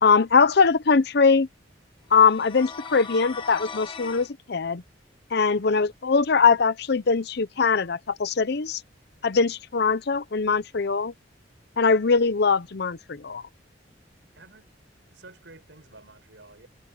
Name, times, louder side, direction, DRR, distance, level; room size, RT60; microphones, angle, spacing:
voice 1, 0.0-1.5 2.1-4.8 5.3-8.8 9.2-11.1 11.8-13.4, left 5 dB, 60° left, 0.7 m, -21 dB
sound 1, 2.1-4.3, left 5 dB, 25° left, 1.5 m, -38 dB
voice 2, 15.1-16.7, right 2 dB, 70° right, 6.7 m, -50 dB
head